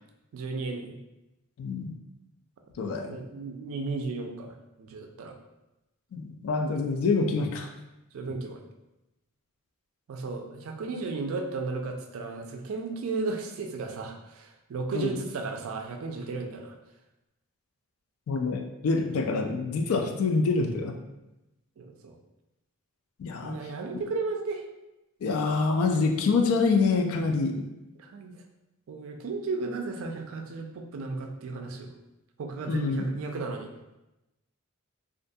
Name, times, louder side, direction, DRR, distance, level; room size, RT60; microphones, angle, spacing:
voice 1, 0.3-1.0 3.1-4.5 4.8-5.3 8.1-8.6 10.1-16.7 21.8-22.1 23.4-24.6 28.0-28.3 28.9-31.9 32.4-33.7, right 3 dB, 70° right, 4 dB, 0.3 m, -34 dB
voice 2, 1.6-1.9 2.8-3.2 6.1-7.7 14.9-15.2 18.3-20.9 23.2-23.6 25.2-27.7 32.7-33.1, left 4 dB, 75° left, 5 dB, 0.3 m, -26 dB
2.4 x 2.2 x 2.6 m, 0.95 s
head